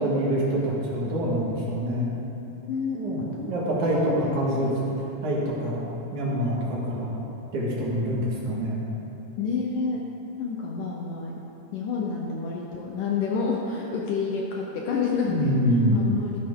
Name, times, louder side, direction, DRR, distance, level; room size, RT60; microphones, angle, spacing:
voice 1, 0.0-2.0 3.0-3.2 3.5-4.7 5.2-5.8 6.1-7.1 7.5-8.8 15.3-16.0, equal, 55° right, -5 dB, 2.7 m, -25 dB
voice 2, 2.7-4.9 9.4-10.0 10.4-11.4 11.7-16.4, left 5 dB, 80° left, -1 dB, 1.9 m, -29 dB
14.5 x 10.5 x 3.7 m, 2.9 s
omnidirectional pair, 4.8 m